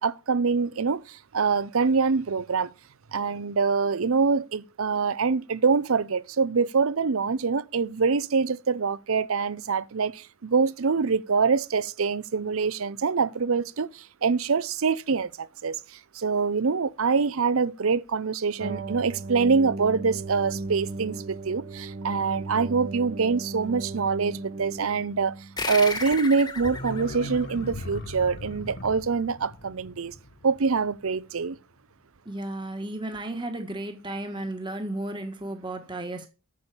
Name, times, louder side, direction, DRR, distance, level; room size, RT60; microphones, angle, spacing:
voice 1, 0.0-2.7 3.1-25.3 25.7-30.1 30.4-31.6, right 5 dB, 80° right, 0.6 m, -25 dB
sound 1, 18.6-25.7, right 3 dB, 45° right, 0.8 m, -36 dB
sound 2, 25.6-28.5, left 3 dB, 20° left, 1.3 m, -35 dB
sound 3, 26.5-31.3 31.6-31.7, left 1 dB, 50° left, 1.1 m, -39 dB
voice 2, 32.2-36.3, right 1 dB, 20° right, 1.5 m, -34 dB
8.5 x 7.2 x 6.8 m
head